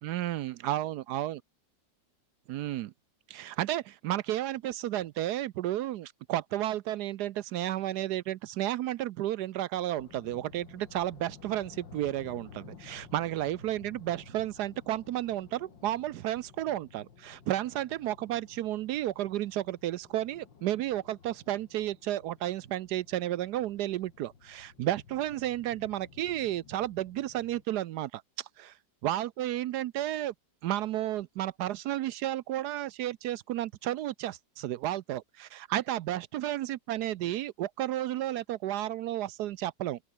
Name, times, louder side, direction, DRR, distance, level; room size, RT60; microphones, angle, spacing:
voice 1, 0.0-1.4 2.5-2.9 3.3-28.7 29.0-30.3 30.6-40.0, right 13 dB, 70° right, 1.1 m, -32 dB
sound 1, 10.0-27.6, left 6 dB, 90° left, 2.9 m, -54 dB
open air
omnidirectional pair, 2.0 m